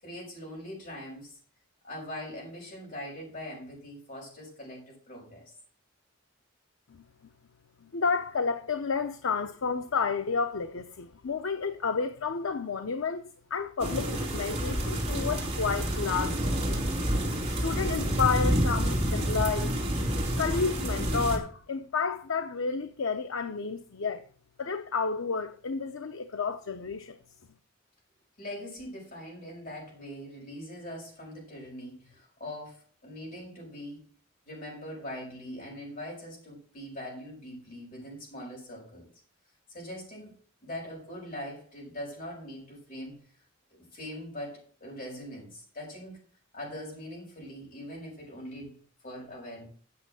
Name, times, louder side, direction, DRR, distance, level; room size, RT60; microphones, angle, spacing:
voice 1, 0.0-1.4 1.8-5.5 28.4-34.0 34.4-39.1 39.7-40.3 40.6-43.2 43.7-46.2 46.5-48.8 49.0-49.7, left 1 dB, 45° left, 6.2 m, -42 dB
voice 2, 7.8-16.8 17.5-19.8 20.4-24.2 24.6-27.2, left 5 dB, 80° left, 0.7 m, -31 dB
sound 1, 13.8-21.4, equal, 30° right, 2.6 m, -28 dB
8.7 x 6.2 x 7.6 m
head